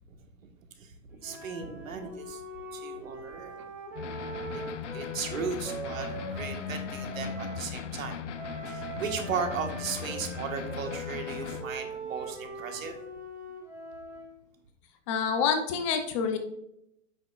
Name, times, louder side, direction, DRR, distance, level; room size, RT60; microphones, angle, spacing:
Wind instrument woodwind instrument, 1.2-7.6 8.3-14.3, right 2 dB, 5° right, 1.7 m, -42 dB
voice 1, 1.2-2.4 2.7-3.6 4.5-4.6 4.9-8.2 8.7-13.0, right 5 dB, 85° right, 5 dB, 1.5 m, -36 dB
sound 1, 4.0-11.6, left 6 dB, 65° left, 0.8 m, -38 dB
voice 2, 15.1-16.4, left 6 dB, 25° left, 6 dB, 0.6 m, -27 dB
8.4 x 6.0 x 2.4 m, 0.79 s
hypercardioid pair, 145°, 39 cm